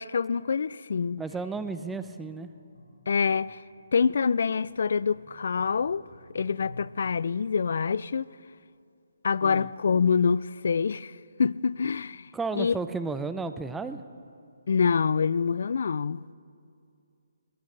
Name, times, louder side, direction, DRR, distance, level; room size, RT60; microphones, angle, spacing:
voice 1, 0.0-1.2 3.1-3.6 3.9-6.0 6.3-8.3 9.2-12.3 12.6-12.8 14.7-16.2, left 5 dB, 60° left, 0.3 m, -26 dB
voice 2, 1.2-2.5 9.4-9.7 12.3-14.0, right 4 dB, 5° right, 0.5 m, -33 dB
sound 1, 1.3-7.1, left 1 dB, 80° left, 5.0 m, -52 dB
20.5 x 19.5 x 3.3 m
figure-of-eight pair, 150°, 0 cm